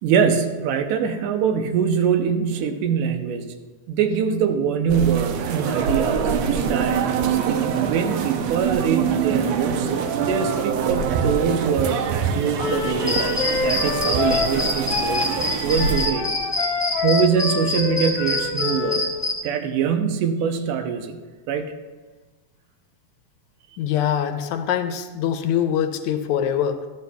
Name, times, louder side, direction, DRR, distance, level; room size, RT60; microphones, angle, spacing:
voice 1, 0.0-3.5 3.9-9.9 10.2-15.3 15.6-16.3 17.0-19.1 19.4-21.2 21.5-21.7, right 7 dB, 90° right, 6 dB, 2.2 m, -23 dB
sound 1, 4.9-16.1, right 6 dB, 75° right, 1.7 m, -24 dB
Wind instrument woodwind instrument, 12.5-19.0, left 5 dB, 65° left, 1.2 m, -27 dB
sound 2, 13.1-19.3, left 2 dB, 10° right, 0.6 m, -25 dB
voice 2, 23.8-26.9, left 9 dB, 80° left, 7 dB, 2.0 m, -23 dB
13.0 x 11.0 x 2.3 m, 1.3 s
omnidirectional pair, 3.5 m